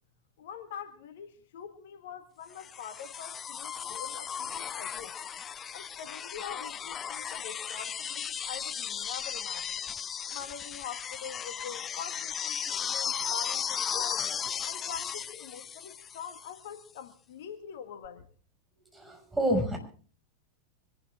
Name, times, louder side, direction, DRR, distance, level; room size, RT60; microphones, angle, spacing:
voice 1, 0.4-5.1 5.7-9.8 10.3-14.3 14.6-18.3, left 8 dB, 55° left, 1.7 m, -44 dB
sound 1, 2.6-16.6 18.0-18.1, left 8 dB, 25° left, 0.7 m, -36 dB
voice 2, 18.9-19.8, equal, 5° right, 6.1 m, -29 dB
25.0 x 12.5 x 3.6 m
figure-of-eight pair, 90°, 0 cm